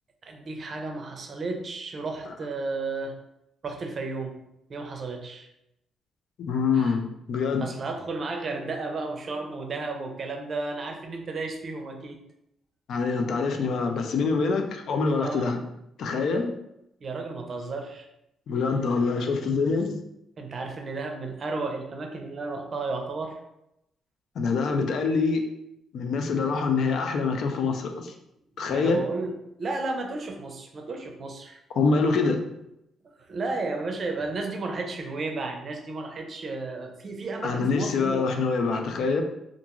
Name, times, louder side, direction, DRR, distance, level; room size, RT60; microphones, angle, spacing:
voice 1, 0.2-3.1 3.6-4.4 4.7-5.5 6.7-7.0 7.6-12.2 15.2-15.5 17.0-18.1 20.4-23.4 28.6-31.6 33.2-38.3, right 3 dB, 45° right, 3 dB, 0.5 m, -33 dB
voice 2, 6.4-7.7 12.9-15.6 16.0-16.5 18.5-20.0 24.4-25.4 25.9-28.1 28.6-29.0 31.8-32.4 37.4-39.2, left 4 dB, 70° left, 5 dB, 0.4 m, -25 dB
2.5 x 2.3 x 2.9 m, 0.83 s
cardioid pair, 90°, 0 cm